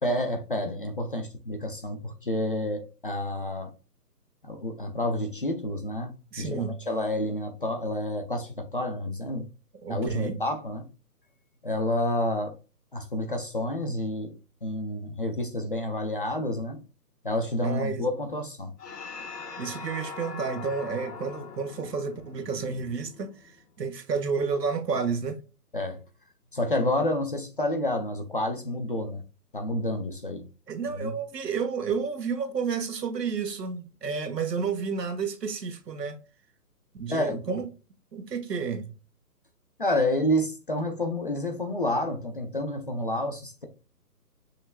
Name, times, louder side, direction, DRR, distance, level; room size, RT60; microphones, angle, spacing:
voice 1, 0.0-3.7 4.4-6.1 6.4-9.4 9.9-10.9 11.6-12.5 12.9-16.8 17.2-18.7 25.7-26.0 26.5-29.2 29.5-30.5 31.0-31.1 37.1-37.4 39.8-43.7, left 1 dB, 35° left, 0.5 m, -29 dB
voice 2, 6.3-6.8 9.8-10.4 17.6-18.0 19.6-25.4 30.7-36.2 36.9-37.7 38.1-38.9, right 5 dB, 85° right, 1.3 m, -31 dB
sound 1, 18.8-23.6, left 4 dB, 80° left, 1.4 m, -41 dB
5.5 x 3.2 x 2.2 m
hypercardioid pair, 165°, 48 cm